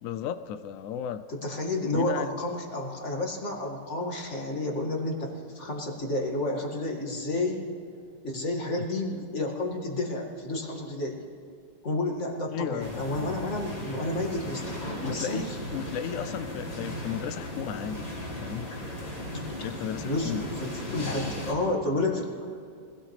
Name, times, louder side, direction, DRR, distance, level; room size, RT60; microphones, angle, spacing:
voice 1, 0.0-1.2 1.9-2.3 8.8-8.9 12.5-13.4 15.0-18.1 18.4-18.7 19.6-20.5, left 9 dB, 80° left, 11 dB, 0.7 m, -35 dB
voice 2, 1.3-7.7 8.2-11.2 11.8-15.6 19.3-19.7 20.0-22.6, left 2 dB, 40° left, 0 dB, 2.3 m, -31 dB
sound 1, 12.8-21.5, left 1 dB, 60° left, 3.5 m, -37 dB
25.0 x 17.0 x 3.3 m, 2.4 s
omnidirectional pair, 2.0 m